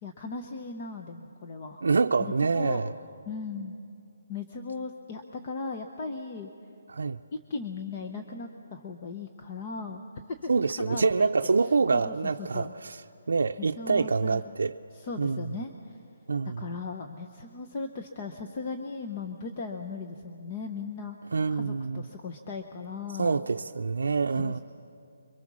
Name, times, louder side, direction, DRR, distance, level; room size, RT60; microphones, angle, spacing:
voice 1, 0.0-1.8 2.2-2.8 3.3-3.8 4.3-6.5 7.5-10.0 10.4-10.5 10.8-11.3 11.9-12.7 13.6-14.4 14.9-16.0 16.4-21.2 21.5-23.4 24.4-24.6, left 4 dB, 25° left, 0.8 m, -37 dB
voice 2, 1.8-2.9 6.9-7.2 10.5-13.0 13.3-14.7 15.2-15.5 16.3-16.7 21.3-22.1 23.1-24.6, right 4 dB, 80° right, 0.5 m, -26 dB
26.0 x 23.5 x 6.2 m
hypercardioid pair, 175°, 0 cm